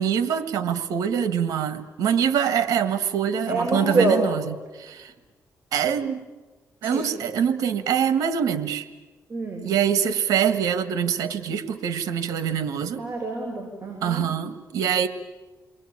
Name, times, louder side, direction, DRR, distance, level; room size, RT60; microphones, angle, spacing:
voice 1, 0.0-5.1 5.7-6.2 6.8-8.9 9.6-13.0 14.0-15.1, right 8 dB, 90° right, 11 dB, 1.7 m, -24 dB
voice 2, 3.5-4.2 6.8-7.0 9.3-9.6 13.0-14.2, right 2 dB, 30° right, 0 dB, 7.2 m, -25 dB
29.0 x 21.5 x 8.8 m, 1.2 s
cardioid pair, 90°, 6 cm